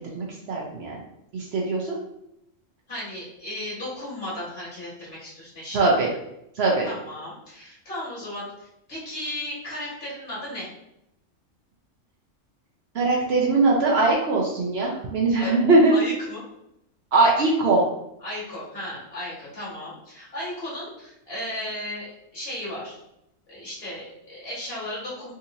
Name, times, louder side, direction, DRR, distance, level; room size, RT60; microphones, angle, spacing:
voice 1, 0.1-1.0 1.3-2.0 5.7-6.1 6.6-6.9 12.9-15.9 17.1-17.8, right 3 dB, 60° right, -2 dB, 0.8 m, -21 dB
voice 2, 2.9-6.0 6.8-10.7 15.4-15.6 15.9-16.4 18.2-23.0 23.5-25.3, left 1 dB, 50° left, -7 dB, 1.8 m, -35 dB
3.7 x 2.8 x 2.6 m, 0.82 s
omnidirectional pair, 1.3 m